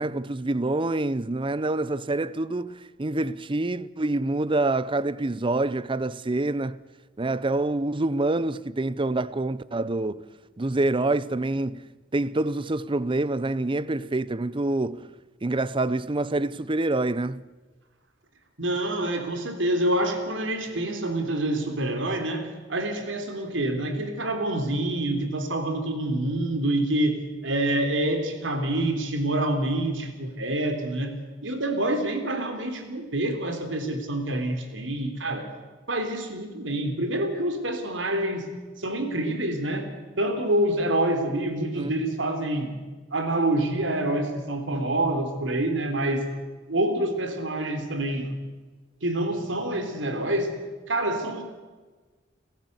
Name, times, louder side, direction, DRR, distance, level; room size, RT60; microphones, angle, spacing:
voice 1, 0.0-6.8 7.2-10.2 10.6-11.9 12.1-15.1 15.4-17.4 41.8-41.9, right 2 dB, 25° right, 0.6 m, -26 dB
voice 2, 18.6-31.1 31.4-35.5 35.9-38.5 38.8-39.9 40.2-42.7 43.1-46.3 46.7-48.3 49.0-50.6 50.9-51.4, right 1 dB, 75° right, 3.5 m, -27 dB
29.5 x 15.0 x 8.1 m
head